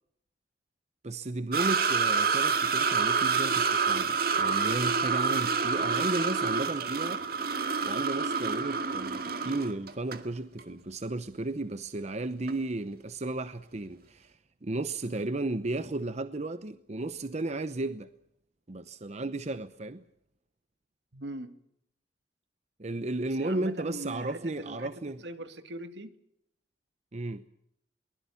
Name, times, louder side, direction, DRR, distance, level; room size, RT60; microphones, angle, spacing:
voice 1, 1.0-7.3 7.8-14.4 14.6-18.1 18.7-20.0 22.8-25.2 27.1-27.4, right 2 dB, 40° right, 0.8 m, -34 dB
sound 1, 1.5-10.2 10.6-10.7 12.5-12.6, right 5 dB, 55° right, 2.1 m, -28 dB
voice 2, 21.1-21.6 23.4-24.9 25.2-26.1, right 1 dB, 75° right, 2.1 m, -41 dB
23.0 x 20.5 x 7.0 m
head